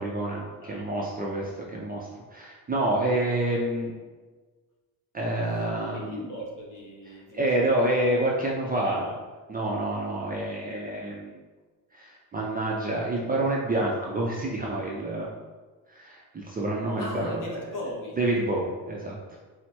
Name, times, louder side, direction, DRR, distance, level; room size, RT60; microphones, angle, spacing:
voice 1, 0.0-3.9 5.1-6.2 7.1-9.1 9.5-11.3 11.9-15.3 15.9-17.4 18.2-19.2, right 1 dB, 25° right, -3 dB, 0.4 m, -28 dB
voice 2, 5.9-7.7 8.7-9.1 17.0-18.2, left 1 dB, 50° left, -2 dB, 1.1 m, -38 dB
4.4 x 2.1 x 4.3 m, 1.4 s
cardioid pair, 140°, 41 cm